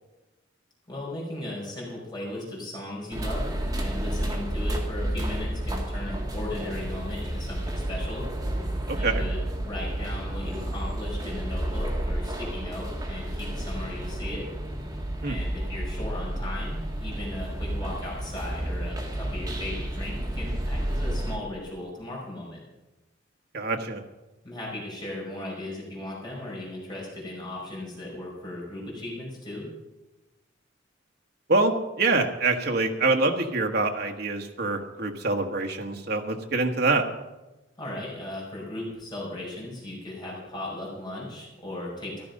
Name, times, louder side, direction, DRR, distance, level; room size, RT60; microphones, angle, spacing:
voice 1, 0.9-8.3 8.9-14.5 15.2-22.6 24.4-29.7 37.8-42.2, left 1 dB, 25° left, -4 dB, 5.0 m, -37 dB
sound 1, 3.1-21.4, right 1 dB, 20° right, 2.0 m, -31 dB
voice 2, 8.9-9.2 15.2-15.3 23.5-24.0 31.5-37.0, right 3 dB, 55° right, 3 dB, 1.4 m, -25 dB
14.5 x 12.0 x 5.3 m, 1.0 s
head